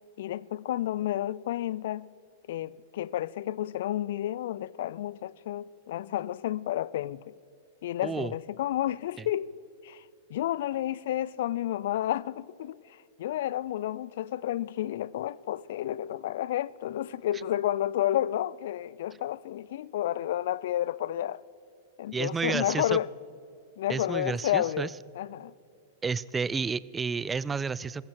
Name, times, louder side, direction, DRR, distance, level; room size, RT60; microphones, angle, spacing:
voice 1, 0.2-2.1 2.5-7.4 7.8-9.5 9.8-10.0 10.3-21.4 22.0-23.1 23.8-25.5, left 12 dB, 70° left, 0.3 m, -31 dB
voice 2, 8.0-8.3 22.1-23.0 23.9-24.9 26.0-28.1, right 5 dB, 15° right, 0.3 m, -31 dB
15.0 x 14.5 x 4.6 m
hypercardioid pair, 120°, 0 cm